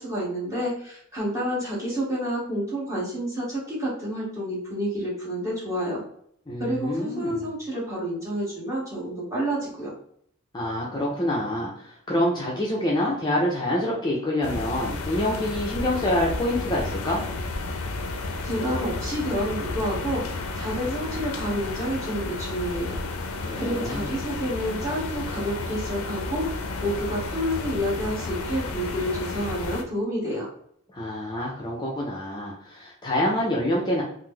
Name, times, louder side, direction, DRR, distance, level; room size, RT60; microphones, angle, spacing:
voice 1, 0.0-6.0 6.6-9.9 18.4-20.2 20.6-22.9 23.6-26.4 26.8-30.5, equal, 15° right, -7 dB, 1.2 m, -29 dB
voice 2, 6.5-7.5 10.5-17.2 23.4-24.1 30.9-34.0, left 1 dB, 20° left, -4 dB, 0.5 m, -26 dB
sound 1, 14.4-29.8, left 3 dB, 75° left, 0.4 m, -32 dB
3.0 x 2.0 x 3.6 m, 0.67 s
head